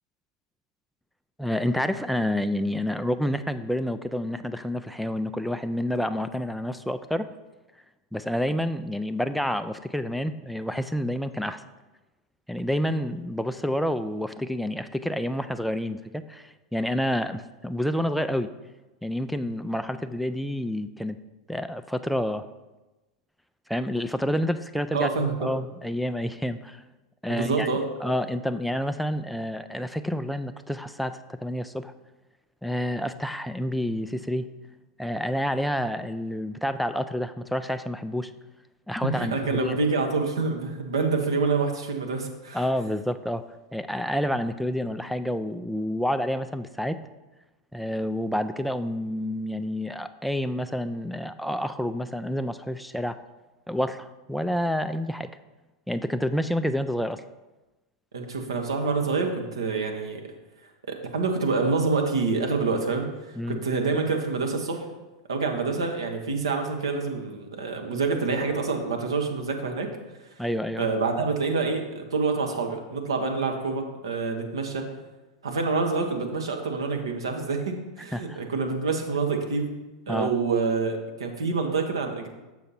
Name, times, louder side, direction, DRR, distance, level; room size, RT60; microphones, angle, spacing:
voice 1, 1.4-7.3 8.1-11.6 12.5-18.5 19.0-21.2 21.5-22.5 23.7-26.8 27.2-27.7 28.0-31.9 32.6-34.5 35.0-38.3 38.9-39.8 42.5-43.4 43.7-47.0 47.7-53.2 53.7-55.3 55.9-57.2 63.4-63.6 70.4-70.9 78.1-78.5 80.1-80.3, equal, ahead, 9 dB, 0.3 m, -29 dB
voice 2, 24.9-25.5 27.3-27.8 39.1-42.6 58.1-60.2 60.9-64.9 65.3-69.9 70.8-74.8 75.4-79.7 80.1-82.3, right 4 dB, 75° right, 3 dB, 1.1 m, -27 dB
6.4 x 5.6 x 4.2 m, 1.1 s
figure-of-eight pair, 90°, 3 cm